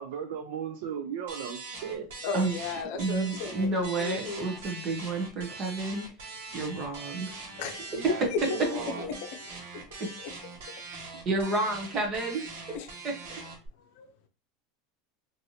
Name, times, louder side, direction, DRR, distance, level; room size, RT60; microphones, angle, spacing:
voice 1, 0.0-2.1 7.9-9.2, right 7 dB, 65° right, 0.5 m, -36 dB
sound 1, 1.3-13.7, right 3 dB, 85° right, 1.1 m, -42 dB
voice 2, 2.2-3.7 4.0-4.5 7.6-9.2 9.4-9.9 12.7-12.9 13.9-14.1, left 5 dB, 50° left, 0.6 m, -34 dB
voice 3, 3.0-7.3 10.0-10.1 11.3-12.4, right 2 dB, 25° right, 0.8 m, -30 dB
3.2 x 2.6 x 2.7 m
supercardioid pair, 175°, 0 cm